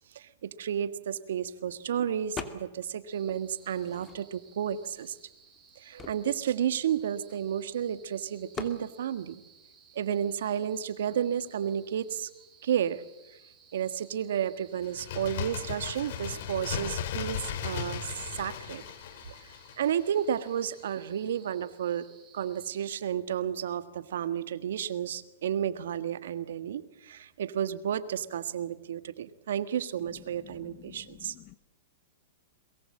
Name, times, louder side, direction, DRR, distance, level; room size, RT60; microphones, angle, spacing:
voice 1, 0.1-5.2 5.8-9.4 9.9-12.3 12.6-13.0 13.7-18.8 19.8-31.3, right 9 dB, 70° right, 13 dB, 1.5 m, -32 dB
sound 1, 2.4-2.9 3.3-4.5 5.2-5.3 5.5-7.7 8.5-8.8, left 6 dB, 20° left, 2.3 m, -42 dB
sound 2, 3.1-23.0, right 6 dB, 20° right, 8.0 m, -59 dB
Bird, 14.8-20.4 20.7-20.8, left 9 dB, 60° left, 2.9 m, -37 dB
voice 2, 30.4-31.5, left 15 dB, 40° left, 18 dB, 0.9 m, -51 dB
22.5 x 22.0 x 7.6 m, 0.94 s
hypercardioid pair, 115°, 0 cm